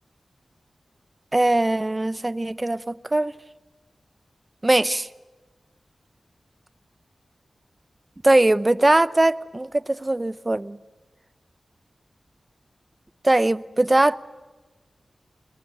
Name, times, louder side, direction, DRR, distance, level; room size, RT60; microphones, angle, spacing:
voice 1, 1.3-3.3 4.6-5.1 8.2-10.8 13.2-14.2, right 2 dB, 30° right, 0.8 m, -20 dB
27.5 x 21.5 x 9.3 m
cardioid pair, 55°, 0 cm